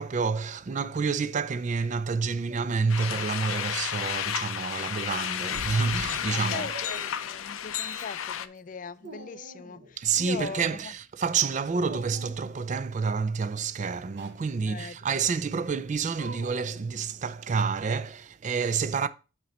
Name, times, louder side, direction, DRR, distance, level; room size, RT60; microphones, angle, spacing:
voice 1, 0.0-6.7 10.0-19.1, right 5 dB, 35° right, 0.3 m, -29 dB
Dog, 2.4-3.2 4.3-5.2 6.6-7.4 7.8-8.3 8.6-10.0 11.7-12.8 13.9-14.4 16.1-17.5, right 2 dB, 55° right, 0.9 m, -46 dB
sound 1, 2.9-8.5, left 9 dB, 90° left, 0.5 m, -32 dB
voice 2, 6.2-10.9 14.6-15.0 15.2-15.3, left 5 dB, 40° left, 0.3 m, -40 dB
8.6 x 3.0 x 5.2 m
head